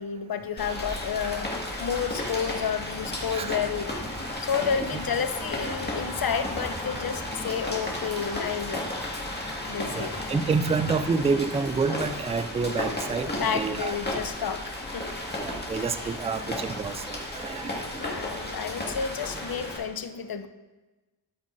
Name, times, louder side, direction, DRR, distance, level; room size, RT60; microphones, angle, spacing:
voice 1, 0.0-1.5 1.8-3.9 4.4-8.8 9.7-10.2 13.2-15.1 16.0-16.1 18.0-20.5, left 7 dB, 55° left, 10 dB, 0.7 m, -31 dB
Rain, 0.6-19.8, left 1 dB, 20° left, 1.8 m, -34 dB
voice 2, 3.3-3.7 4.9-5.0 9.9-14.0 15.3-17.9, right 4 dB, 15° right, 11 dB, 0.3 m, -28 dB
13.5 x 5.3 x 2.6 m, 1.2 s
cardioid pair, 65°, 44 cm